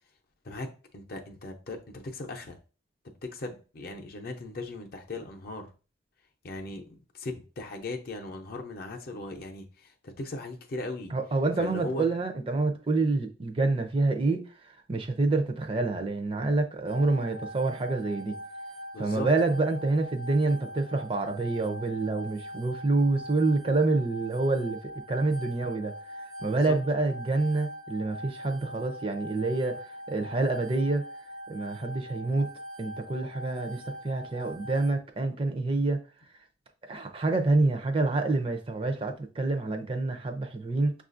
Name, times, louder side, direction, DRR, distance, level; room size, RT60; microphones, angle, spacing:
voice 1, 0.4-2.6 3.0-5.7 6.4-11.1 11.6-12.1 18.9-19.3 26.5-26.8, left 2 dB, 50° left, 0.6 m, -38 dB
voice 2, 11.1-14.4 14.9-18.4 19.0-24.8 25.1-25.9 26.4-29.8 30.1-31.0 31.5-32.5 32.8-36.0 36.9-40.9, right 3 dB, 30° right, 0.5 m, -27 dB
sound 1, 16.9-34.9, equal, 85° right, 0.9 m, -42 dB
6.2 x 2.4 x 2.5 m
head